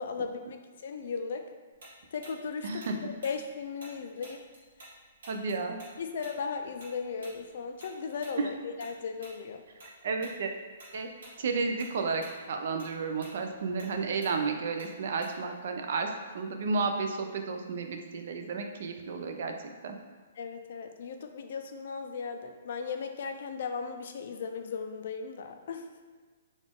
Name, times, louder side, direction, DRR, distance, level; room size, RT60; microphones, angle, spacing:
voice 1, 0.0-1.5 2.1-4.4 6.0-9.6 20.4-25.9, left 5 dB, 55° left, 6 dB, 0.4 m, -37 dB
Tick-tock, 1.8-4.9 5.2-9.9 10.2-10.4 10.8-11.4 11.7-15.6, right 1 dB, 75° right, 1.4 m, -51 dB
voice 2, 2.6-2.9 5.3-5.8 8.4-8.5 10.0-10.5 10.9-11.1 11.4-19.5 19.8-20.0, right 4 dB, 55° right, 5 dB, 0.4 m, -32 dB
4.0 x 2.4 x 3.5 m, 1.5 s
hypercardioid pair, 170°, 0 cm